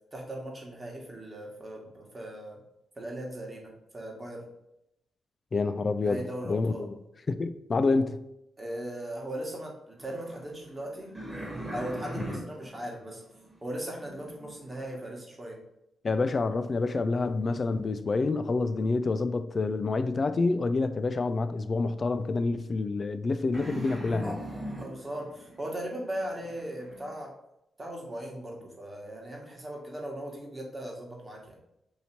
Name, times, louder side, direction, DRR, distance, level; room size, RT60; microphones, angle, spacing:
voice 1, 0.1-2.6 3.0-4.4 6.0-6.8 8.6-11.2 11.7-13.2 13.6-15.6 24.8-27.3 27.8-31.6, right 1 dB, 30° right, 1.3 m, -38 dB
voice 2, 5.5-7.0 7.3-8.2 12.3-12.4 16.0-24.4, left 3 dB, 45° left, 0.3 m, -28 dB
sound 1, 10.0-15.1 23.5-27.2, right 1 dB, 10° right, 1.4 m, -41 dB
2.8 x 2.7 x 4.3 m
supercardioid pair, 55°, 0 cm